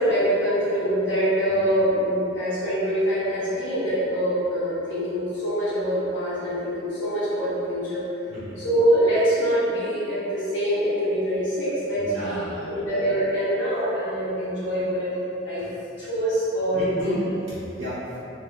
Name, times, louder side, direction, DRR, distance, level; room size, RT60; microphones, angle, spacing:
voice 1, 0.0-8.0 8.6-15.6 16.0-17.1, equal, 80° left, -15 dB, 0.8 m, -24 dB
voice 2, 8.3-8.6 12.0-12.9 16.7-18.2, equal, 55° right, -14 dB, 0.8 m, -31 dB
2.3 x 2.3 x 3.5 m, 2.8 s
head